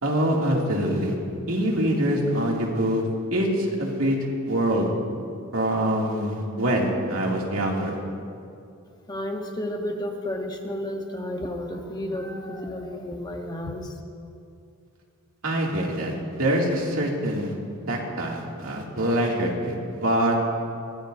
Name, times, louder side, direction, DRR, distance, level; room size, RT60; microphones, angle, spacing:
voice 1, 0.0-1.1 1.5-3.0 3.3-4.2 4.4-4.9 5.5-8.0 15.4-17.5 17.9-20.4, right 1 dB, 70° right, -2 dB, 2.5 m, -24 dB
voice 2, 9.1-13.9, left 1 dB, 20° left, 3 dB, 1.1 m, -32 dB
22.0 x 18.0 x 2.7 m, 2.5 s
head